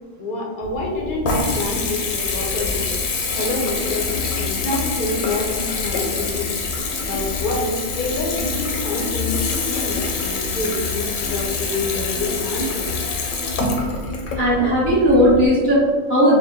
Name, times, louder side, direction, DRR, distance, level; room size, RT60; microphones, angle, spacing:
voice 1, 0.2-2.9 3.3-6.5 7.0-9.4 9.7-12.9, left 2 dB, 50° left, -1 dB, 0.6 m, -27 dB
Water tap faucet / Bathtub (filling or washing) / Trickle dribble, 0.6-15.5, left 4 dB, 75° left, 1.0 m, -25 dB
voice 2, 14.4-16.4, equal, 40° right, -8 dB, 1.3 m, -16 dB
4.2 x 2.1 x 3.5 m, 1.5 s
omnidirectional pair, 1.5 m